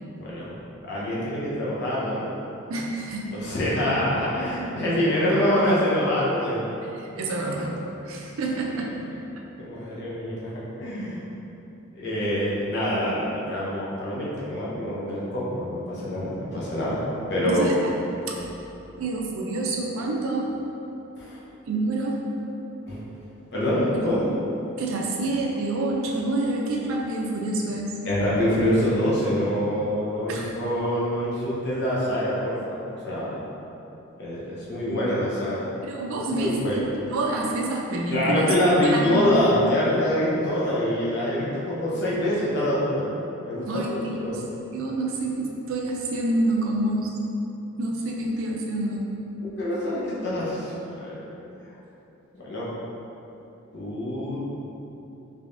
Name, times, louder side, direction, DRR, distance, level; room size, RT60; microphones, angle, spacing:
voice 1, 0.2-0.5 0.8-2.3 3.4-6.6 9.6-10.5 10.8-11.2 11.9-17.0 17.3-17.7 21.2-21.4 22.9-23.0 23.5-24.3 28.0-32.8 33.0-33.4 34.2-35.7 36.3-36.8 38.1-43.1 43.4-44.3 49.4-51.2 52.4-52.7 53.7-54.5, equal, 50° left, -7 dB, 0.6 m, -25 dB
voice 2, 2.7-3.3 3.9-4.0 7.2-7.8 8.0-9.2 17.4-17.7 18.3-18.4 19.0-20.5 21.7-22.2 24.8-28.0 30.3-30.5 35.8-38.5 38.8-39.3 43.7-44.4 44.7-47.1 47.8-49.1, right 2 dB, 70° right, -1 dB, 0.4 m, -27 dB
3.4 x 3.4 x 2.5 m, 3.0 s
head